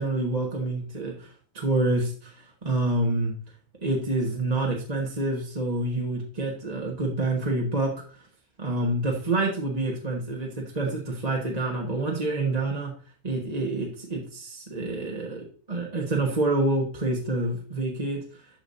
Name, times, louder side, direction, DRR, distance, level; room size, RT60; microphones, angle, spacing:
voice 1, 0.0-3.3 3.8-7.9 8.6-12.9 13.2-18.2, right 2 dB, 25° right, -1 dB, 1.5 m, -27 dB
13.0 x 5.0 x 2.6 m, 0.43 s
omnidirectional pair, 1.6 m